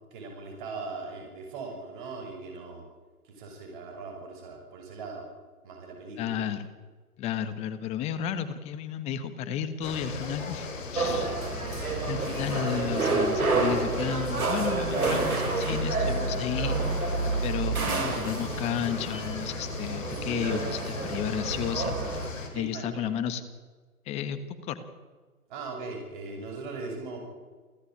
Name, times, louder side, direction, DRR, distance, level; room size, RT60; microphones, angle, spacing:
voice 1, 0.1-2.8 3.2-5.3 5.6-6.3 22.5-23.1 25.5-27.2, right 3 dB, 30° right, 2 dB, 6.5 m, -39 dB
voice 2, 6.2-6.6 7.2-11.4 12.0-23.4 24.0-24.8, left 8 dB, 15° left, 12 dB, 1.4 m, -33 dB
sound 1, 9.8-22.5, left 4 dB, 55° left, 5.0 m, -37 dB
sound 2, 11.0-22.3, right 3 dB, 70° right, 5.9 m, -29 dB
28.5 x 14.5 x 8.8 m, 1.4 s
figure-of-eight pair, 140°, 45 cm